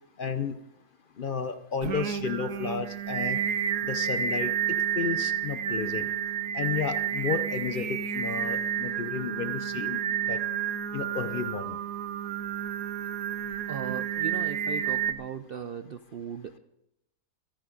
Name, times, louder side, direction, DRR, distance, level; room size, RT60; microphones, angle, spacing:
voice 1, 0.2-0.5 1.2-3.4 3.9-4.5 5.0-6.1 6.5-10.0 10.3-10.4 10.9-11.8, left 6 dB, 55° left, 11 dB, 0.6 m, -32 dB
Singing, 1.8-15.1, right 9 dB, 85° right, 1.4 m, -30 dB
voice 2, 13.7-16.6, right 8 dB, 65° right, 10 dB, 0.5 m, -37 dB
25.0 x 10.0 x 3.8 m, 0.84 s
omnidirectional pair, 1.6 m